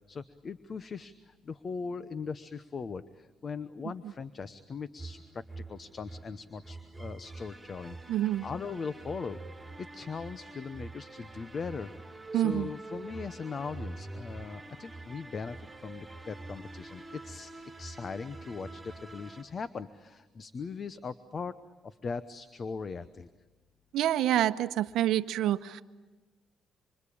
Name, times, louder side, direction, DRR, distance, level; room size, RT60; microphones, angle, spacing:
voice 1, 0.1-9.4 9.8-11.9 12.3-17.5 17.8-21.6 21.8-23.3, left 5 dB, 40° left, 13 dB, 0.9 m, -40 dB
sound 1, 5.0-19.4, right 2 dB, 5° right, 3.5 m, -45 dB
voice 2, 8.1-8.4 12.3-12.7 23.9-25.8, right 12 dB, 80° right, 12 dB, 0.9 m, -27 dB
26.0 x 26.0 x 8.6 m, 1.2 s
cardioid pair, 100°, 0 cm